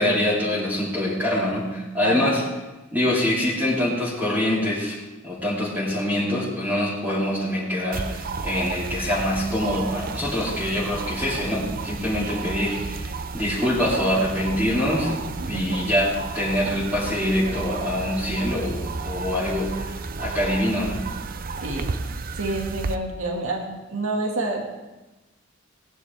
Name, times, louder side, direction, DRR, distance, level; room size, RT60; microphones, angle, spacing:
voice 1, 0.0-2.4 2.9-5.0 5.2-21.0, left 1 dB, 10° right, -10 dB, 2.9 m, -25 dB
voice 2, 2.0-2.4 15.5-15.9 21.6-21.9 22.4-24.6, right 2 dB, 75° right, 1 dB, 2.1 m, -28 dB
sound 1, 7.9-23.0, right 4 dB, 45° right, 0.6 m, -32 dB
17.5 x 10.5 x 3.6 m, 1.1 s
head